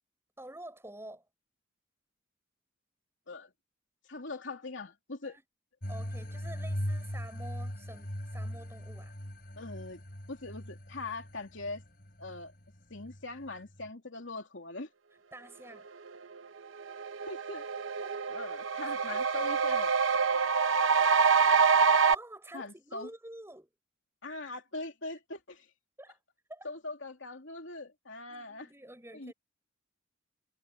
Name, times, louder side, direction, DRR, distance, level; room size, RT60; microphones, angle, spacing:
voice 1, 0.4-1.3 5.2-5.4 5.9-9.1 15.3-15.9 18.0-18.2 19.1-19.2 20.3-20.5 20.9-21.7 22.1-23.7 26.0-26.2 26.5-26.7 28.3-29.3, right 1 dB, 15° right, 7.5 m, -49 dB
voice 2, 4.1-5.4 9.6-10.0 10.3-11.8 12.2-12.5 12.9-14.9 17.3-17.6 18.3-19.9 22.5-23.1 24.2-25.7 26.6-28.7 29.1-29.3, left 2 dB, 70° left, 3.0 m, -41 dB
sound 1, 5.8-13.9, equal, 50° left, 3.8 m, -40 dB
sound 2, 16.4-16.5 16.8-22.1, right 5 dB, 80° right, 0.9 m, -26 dB
head